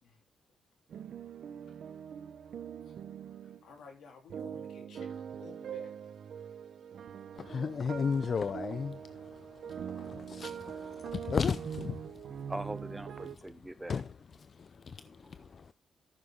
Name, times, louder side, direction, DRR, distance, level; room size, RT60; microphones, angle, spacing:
sound 1, 0.9-3.6 4.3-13.4, right 8 dB, 65° right, 0.8 m, -43 dB
voice 1, 3.4-5.9, left 5 dB, 75° left, 3.2 m, -54 dB
voice 2, 7.4-12.0 13.9-14.0 14.5-15.7, left 6 dB, 45° left, 0.5 m, -35 dB
voice 3, 12.5-14.0 14.9-15.7, right 1 dB, 10° right, 0.6 m, -43 dB
13.5 x 6.7 x 3.6 m
cardioid pair, 115°, 0 cm